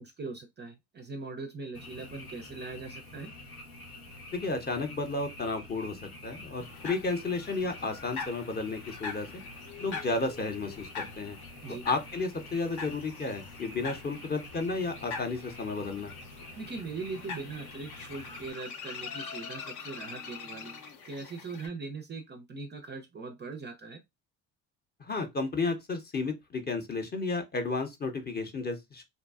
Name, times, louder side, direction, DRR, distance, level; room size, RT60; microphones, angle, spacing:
voice 1, 0.0-3.3 11.6-11.9 16.6-24.0, right 3 dB, 25° right, 0.4 m, -41 dB
Frog, 1.7-18.5, left 2 dB, 85° left, 1.0 m, -48 dB
voice 2, 4.3-6.0 6.2-9.3 9.8-11.4 11.8-16.1 25.0-29.0, left 3 dB, 20° left, 0.6 m, -32 dB
sound 1, 6.6-21.7, left 5 dB, 55° left, 0.7 m, -44 dB
2.6 x 2.2 x 2.3 m
hypercardioid pair, 60°, 44 cm